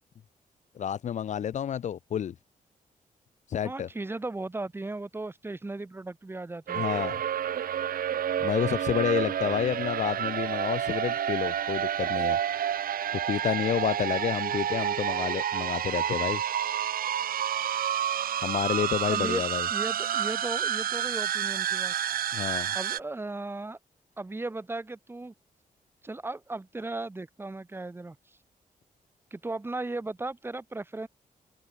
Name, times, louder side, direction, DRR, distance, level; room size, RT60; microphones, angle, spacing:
voice 1, 0.8-2.3 3.5-3.9 6.7-7.2 8.4-12.4 13.1-16.4 18.4-19.7 22.3-22.7, left 9 dB, 55° left, 0.5 m, -29 dB
voice 2, 3.6-6.8 19.1-19.4 19.7-21.9 22.7-23.8 24.2-25.3 26.0-28.2 29.3-31.1, right 2 dB, 15° right, 2.2 m, -36 dB
sound 1, 6.7-23.0, right 10 dB, 80° right, 2.2 m, -29 dB
wide cardioid pair, 160°, 15 cm